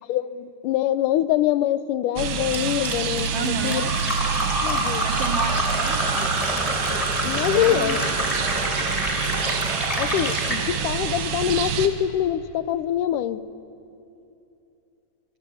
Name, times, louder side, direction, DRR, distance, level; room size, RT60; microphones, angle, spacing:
voice 1, 0.1-3.9 4.6-5.0 7.2-8.0 10.0-13.4, left 12 dB, 85° left, 14 dB, 2.3 m, -24 dB
sound 1, 2.2-11.9, right 7 dB, 80° right, 2.9 m, -27 dB
Fill (with liquid), 2.5-10.6, equal, 10° left, 3.3 m, -27 dB
voice 2, 3.3-4.0 5.0-6.4 7.4-8.0, right 5 dB, 60° right, 5 dB, 1.9 m, -31 dB
25.0 x 24.5 x 8.5 m, 2.7 s
omnidirectional pair, 3.7 m